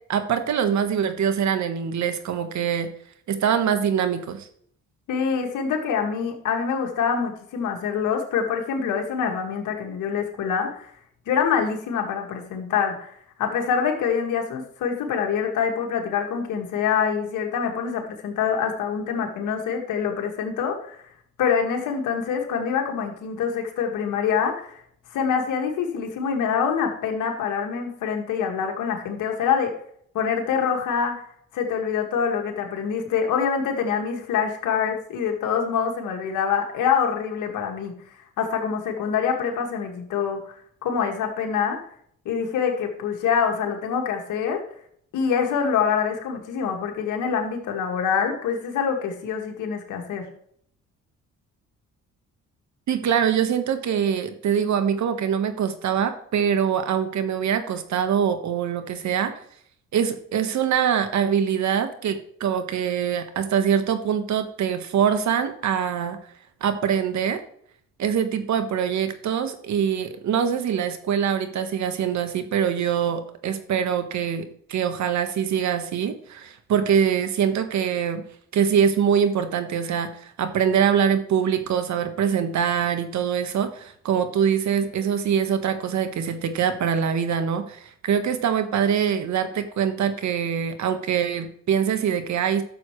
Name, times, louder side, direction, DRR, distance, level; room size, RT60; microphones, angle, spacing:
voice 1, 0.1-2.9 3.3-4.5 52.9-59.3 59.9-66.2 66.6-67.4 68.0-78.2 78.5-92.6, right 8 dB, 65° right, 9 dB, 1.4 m, -24 dB
voice 2, 5.1-10.9 11.3-21.1 21.4-24.8 25.1-29.7 30.1-31.3 31.5-37.9 38.4-40.5 40.8-41.8 42.3-44.6 45.1-50.3, left 7 dB, 85° left, 3 dB, 2.1 m, -25 dB
11.5 x 7.1 x 3.2 m, 0.65 s
cardioid pair, 90°, 30 cm